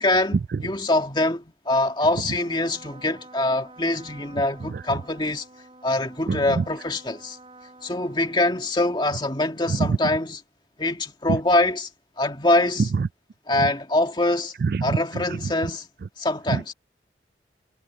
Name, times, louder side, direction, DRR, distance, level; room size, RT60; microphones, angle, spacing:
voice 1, 0.0-5.5 5.8-7.4 7.8-10.4 10.8-11.9 12.2-12.9 13.5-14.5 14.8-15.9 16.2-16.7, left 2 dB, 25° left, 2.2 m, -24 dB
Trumpet, 2.3-9.2, right 2 dB, 30° right, 7.0 m, -49 dB
voice 2, 6.3-6.6 9.7-9.9 11.3-11.4 14.6-14.9 16.5-16.7, right 4 dB, 55° right, 0.3 m, -24 dB
head